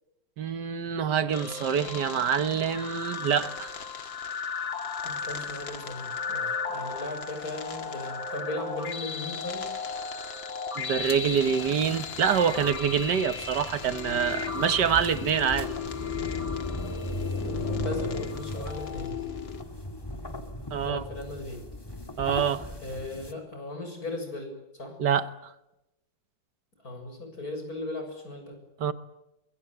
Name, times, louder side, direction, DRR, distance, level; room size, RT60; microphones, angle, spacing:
voice 1, 0.4-3.7 10.8-15.7 20.7-21.1 22.2-22.7 25.0-25.3 28.8-28.9, right 7 dB, 65° right, 1.7 m, -26 dB
sound 1, 1.3-19.6, left 6 dB, 75° left, 2.7 m, -35 dB
voice 2, 5.0-9.7 17.4-19.1 20.8-21.6 22.8-24.5 24.8-25.0 26.8-28.6, left 2 dB, 50° left, 7.5 m, -37 dB
sound 2, 11.0-23.3, left 1 dB, 10° left, 2.1 m, -38 dB
24.0 x 22.5 x 8.0 m
omnidirectional pair, 2.1 m